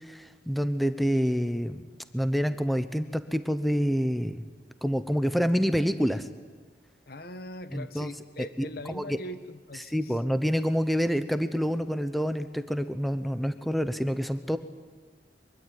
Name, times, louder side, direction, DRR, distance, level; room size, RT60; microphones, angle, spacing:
voice 1, 0.1-1.8 2.1-4.4 4.8-6.3 7.7-8.1 8.4-9.2 9.9-14.6, equal, ahead, 11 dB, 0.9 m, -27 dB
voice 2, 7.1-10.2, left 1 dB, 60° left, 12 dB, 1.4 m, -41 dB
24.0 x 23.5 x 9.7 m, 1.4 s
head